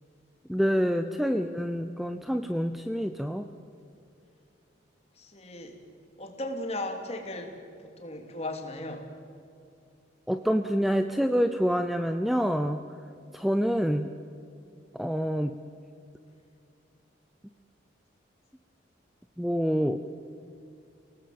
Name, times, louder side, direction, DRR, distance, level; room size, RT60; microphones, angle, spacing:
voice 1, 0.5-3.4 10.3-12.8 13.3-14.1 14.9-15.6 19.4-20.0, equal, ahead, 8 dB, 0.6 m, -27 dB
voice 2, 5.2-5.7 6.2-7.5 8.0-9.0, left 1 dB, 35° left, 3 dB, 3.0 m, -36 dB
29.5 x 18.5 x 7.8 m, 2.5 s
head